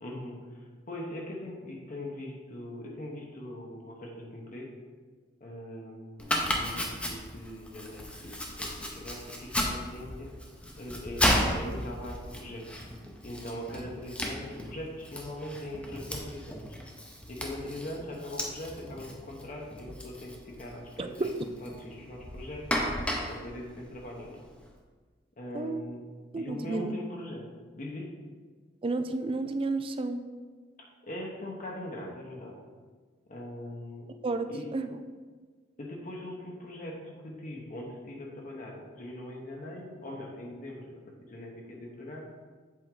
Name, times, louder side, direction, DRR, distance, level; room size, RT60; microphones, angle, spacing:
voice 1, 0.0-4.7 5.4-10.3 10.8-12.9 13.2-16.8 17.3-21.3 21.6-22.7 23.3-24.4 25.4-26.0 26.3-27.5 27.7-28.1 30.8-32.6 33.3-34.1 34.5-34.7 35.8-40.9 41.3-42.3, left 1 dB, 45° left, -1 dB, 1.0 m, -41 dB
Domestic sounds home sounds, 6.2-24.6, equal, 5° left, 0.8 m, -35 dB
voice 2, 21.0-21.5 25.5-25.8 26.3-26.9 28.8-30.2 34.2-34.9, right 3 dB, 30° right, 8 dB, 0.4 m, -31 dB
7.6 x 4.5 x 3.8 m, 1.5 s
head